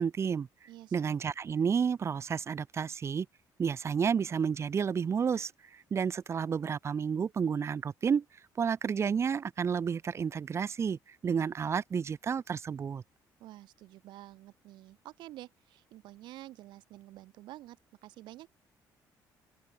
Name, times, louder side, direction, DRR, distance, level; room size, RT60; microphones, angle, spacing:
voice 1, 0.0-0.5 0.9-3.3 3.6-8.2 8.6-13.0, right 6 dB, 35° right, 4.1 m, -31 dB
voice 2, 0.7-1.1 13.4-17.8 18.0-18.5, right 16 dB, 85° right, 5.0 m, -49 dB
open air
cardioid pair, 125°, 8 cm